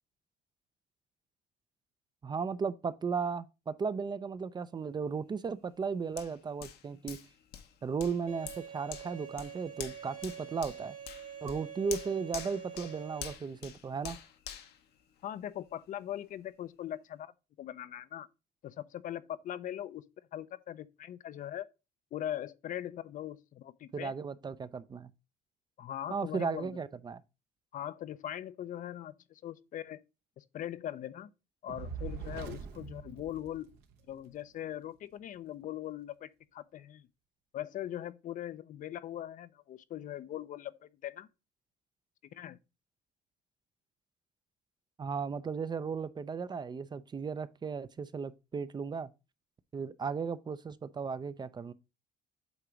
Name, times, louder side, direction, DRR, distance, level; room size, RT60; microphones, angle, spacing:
voice 1, 2.2-7.2 7.8-11.0 11.4-14.2 23.9-25.1 26.1-27.2 45.0-49.1 49.7-51.7, right 5 dB, 25° right, 0.4 m, -35 dB
Hands, 6.2-15.7 16.2-16.3, left 9 dB, 75° left, 0.9 m, -47 dB
Bowed string instrument, 8.3-13.3, right 8 dB, 50° right, 1.7 m, -46 dB
voice 2, 15.2-17.3 17.6-18.3 18.6-20.0 20.3-21.7 22.1-24.1 25.8-26.7 27.7-30.0 30.4-31.3 31.6-33.7 34.1-37.1 37.5-41.3 42.3-42.6, left 11 dB, 50° left, 0.4 m, -41 dB
Fire, 31.7-34.1, right 7 dB, 75° right, 1.0 m, -42 dB
8.0 x 2.9 x 4.8 m
cardioid pair, 110°, 17 cm